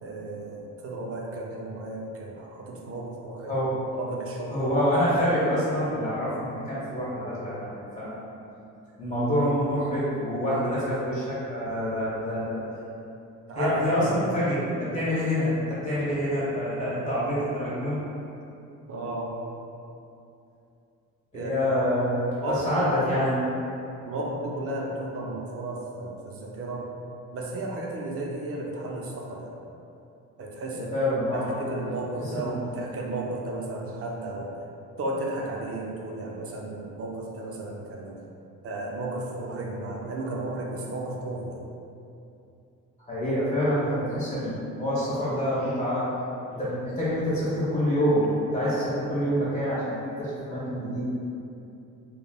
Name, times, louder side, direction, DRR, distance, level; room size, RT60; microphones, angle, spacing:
voice 1, 0.0-3.5 3.9-4.6 10.5-10.8 13.5-14.3 18.9-19.3 21.3-21.5 22.4-22.8 24.0-26.9 27.3-29.6 30.4-30.9 31.3-34.5 35.0-38.2 38.6-41.6, right 2 dB, 50° right, -1 dB, 0.5 m, -34 dB
voice 2, 4.5-8.2 9.0-12.6 13.5-18.0 21.3-23.5 30.7-31.5 32.3-32.6 43.0-46.0 46.6-51.1, equal, 25° left, -10 dB, 1.4 m, -26 dB
3.2 x 2.1 x 2.3 m, 2.7 s
cardioid pair, 90°, 30 cm